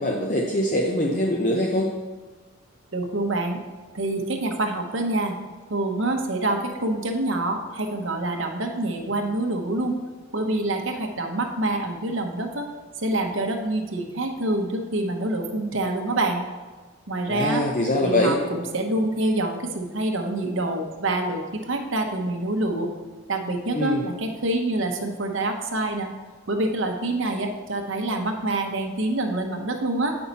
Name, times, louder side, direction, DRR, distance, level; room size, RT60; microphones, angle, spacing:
voice 1, 0.0-1.9 17.3-18.4 23.7-24.0, left 1 dB, 35° left, 0 dB, 0.6 m, -23 dB
voice 2, 2.9-3.6 3.9-5.4 5.7-10.0 10.3-12.7 12.9-16.5 17.1-17.6 18.0-22.9 23.3-26.1 26.5-30.2, right 2 dB, 60° right, 4 dB, 0.9 m, -26 dB
8.8 x 5.6 x 4.1 m, 1.3 s
head